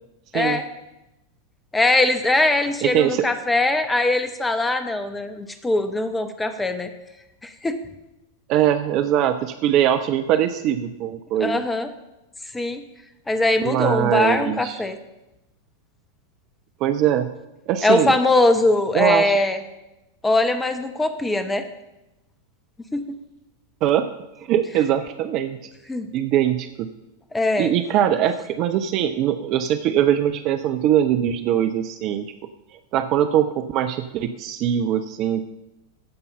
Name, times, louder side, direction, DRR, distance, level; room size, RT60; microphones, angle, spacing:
voice 1, 1.7-6.9 7.4-7.8 11.4-11.9 12.5-12.8 13.3-15.0 17.8-19.6 20.2-21.6 22.9-23.0 25.9-26.1 27.3-27.7, left 2 dB, 10° left, 9 dB, 1.0 m, -21 dB
voice 2, 2.8-3.3 8.5-11.6 13.6-14.8 16.8-17.3 17.7-18.2 18.9-19.3 23.8-24.1 24.4-25.6 26.1-26.9 27.6-32.3 32.7-35.5, right 10 dB, 40° right, 9 dB, 0.6 m, -21 dB
15.5 x 5.4 x 5.5 m, 0.95 s
figure-of-eight pair, 90°, 0 cm